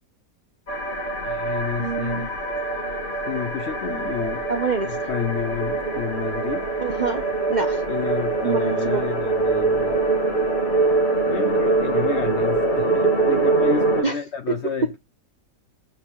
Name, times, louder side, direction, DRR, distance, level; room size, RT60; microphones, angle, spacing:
sound 1, 0.7-14.0, right 3 dB, 30° left, 1.9 m, -23 dB
voice 1, 1.2-2.4 3.3-4.5 4.8-6.7 7.9-10.0 11.3-15.0, left 8 dB, 65° left, 0.7 m, -30 dB
voice 2, 1.8-2.3 4.5-5.0 6.8-7.2 7.5-7.8 8.4-9.0 14.0-14.2, right 5 dB, 80° right, 0.4 m, -26 dB
7.4 x 3.9 x 6.6 m
omnidirectional pair, 1.8 m